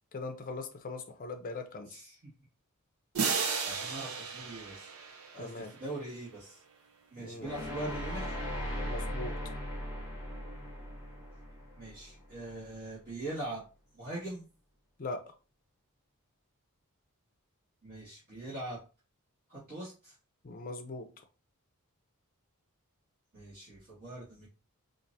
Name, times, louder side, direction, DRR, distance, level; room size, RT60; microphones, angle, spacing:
voice 1, 0.1-2.0 5.4-5.7 7.2-7.5 8.8-9.4 15.0-15.2 20.4-21.1, left 3 dB, 40° left, 6 dB, 0.5 m, -40 dB
voice 2, 1.9-2.2 3.6-4.9 5.3-6.6 7.1-8.4 11.8-13.6 14.0-14.4 17.8-18.8 19.5-20.1 23.3-24.5, right 2 dB, 40° right, -11 dB, 1.9 m, -42 dB
sound 1, 3.1-6.0, right 5 dB, 75° right, 0.6 m, -34 dB
sound 2, 7.4-12.5, equal, 10° right, 1.2 m, -38 dB
4.5 x 2.5 x 2.7 m, 0.34 s
head